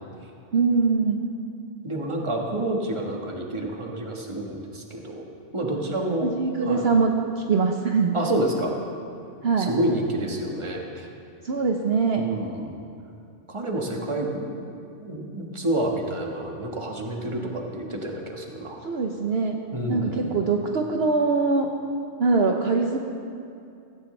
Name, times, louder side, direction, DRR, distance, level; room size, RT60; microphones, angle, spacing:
voice 1, 0.5-1.2 6.2-8.2 9.4-9.7 11.4-12.2 18.8-19.6 19.9-21.7 22.2-23.0, right 4 dB, 60° right, 2 dB, 1.0 m, -23 dB
voice 2, 1.8-5.2 5.5-6.3 6.6-6.8 8.1-8.7 9.6-11.1 12.1-12.7 13.5-14.6 15.0-18.8 19.7-20.3, right 1 dB, 25° right, 0 dB, 1.5 m, -28 dB
16.5 x 16.0 x 3.3 m, 2.5 s
omnidirectional pair, 1.2 m